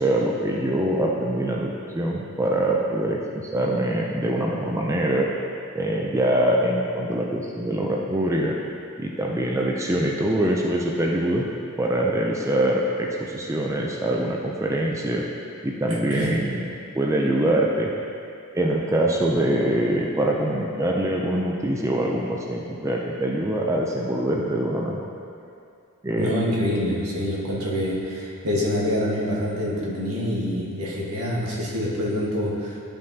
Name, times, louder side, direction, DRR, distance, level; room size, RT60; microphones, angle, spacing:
voice 1, 0.0-5.3 5.7-8.5 9.0-11.4 11.8-15.2 15.6-16.7 16.9-17.9 18.5-25.1 26.0-26.3, right 1 dB, 15° right, -1 dB, 0.4 m, -24 dB
voice 2, 15.9-16.4 26.2-32.8, left 1 dB, 85° right, -4 dB, 1.5 m, -26 dB
11.5 x 5.2 x 2.8 m, 2.5 s
head